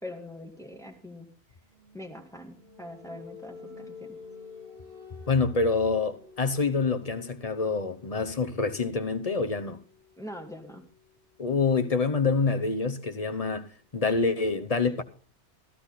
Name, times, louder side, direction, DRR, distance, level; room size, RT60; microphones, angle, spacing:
voice 1, 0.0-1.3 1.9-4.2 10.2-10.9, left 1 dB, 5° left, 2.1 m, -43 dB
sound 1, 1.7-13.2, left 5 dB, 55° right, 3.5 m, -51 dB
voice 2, 5.3-9.8 11.4-13.7 13.9-15.0, left 4 dB, 35° left, 0.9 m, -26 dB
15.0 x 13.0 x 4.2 m
omnidirectional pair, 1.2 m